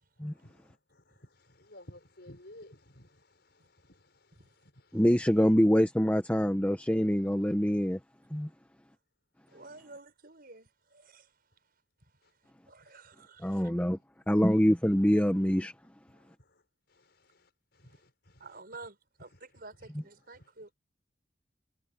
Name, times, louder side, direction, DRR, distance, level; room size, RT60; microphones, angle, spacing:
voice 1, 1.5-3.2 3.9-4.0 13.9-14.0 17.8-18.0 19.8-19.9, left 1 dB, 60° left, 6.2 m, -51 dB
voice 2, 4.9-8.0 8.3-8.5 13.4-14.0 14.3-15.7, equal, 10° left, 1.1 m, -25 dB
voice 3, 9.5-11.3 12.7-13.7 18.4-20.7, right 3 dB, 50° right, 5.8 m, -50 dB
head